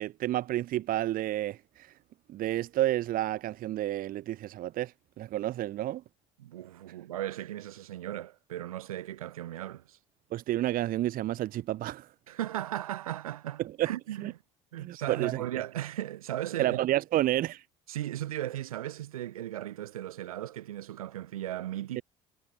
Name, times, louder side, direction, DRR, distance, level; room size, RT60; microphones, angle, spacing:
voice 1, 0.0-1.9 2.3-6.0 10.3-12.1 13.6-13.9 14.2-14.3 14.8-15.4 16.6-17.6 22.0-22.1, right 14 dB, 55° right, 0.8 m, -30 dB
voice 2, 6.4-10.0 12.3-14.3 14.7-16.8 17.9-22.0, right 13 dB, 85° right, 1.6 m, -36 dB
hypercardioid pair, 55°, 18 cm